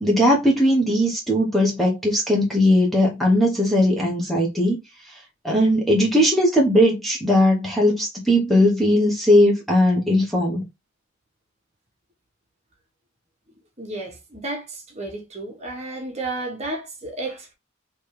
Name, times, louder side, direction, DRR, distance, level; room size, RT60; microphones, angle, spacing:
voice 1, 0.0-4.8 5.4-10.6, equal, ahead, 1.1 m, -19 dB
voice 2, 13.8-17.5, right 2 dB, 35° right, 1.4 m, -32 dB
4.2 x 3.3 x 3.3 m
head